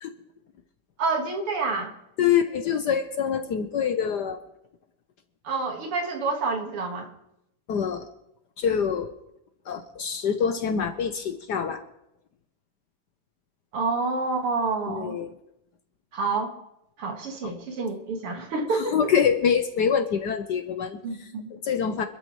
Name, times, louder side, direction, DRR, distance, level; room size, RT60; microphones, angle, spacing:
voice 1, 1.0-1.9 5.4-7.1 13.7-15.2 16.1-16.5 17.0-19.1 21.0-21.5, right 3 dB, 80° right, 3 dB, 2.7 m, -28 dB
voice 2, 2.2-4.4 7.7-8.1 8.6-9.1 9.7-11.8 14.9-15.3 17.4-17.5 18.7-22.0, left 7 dB, 65° left, 8 dB, 1.2 m, -25 dB
26.0 x 13.0 x 3.2 m, 0.82 s
omnidirectional pair, 2.4 m